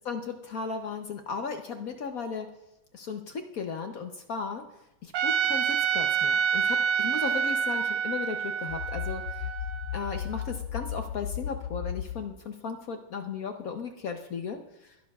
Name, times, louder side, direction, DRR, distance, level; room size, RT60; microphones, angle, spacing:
voice 1, 0.1-2.5 2.9-4.6 5.0-9.4 9.9-14.6, left 5 dB, 60° left, 5 dB, 0.9 m, -36 dB
Trumpet, 5.1-10.3, right 7 dB, 70° right, 1.1 m, -28 dB
sound 1, 8.7-12.2, left 10 dB, 75° left, 1.3 m, -35 dB
22.0 x 11.5 x 2.4 m, 0.92 s
omnidirectional pair, 2.3 m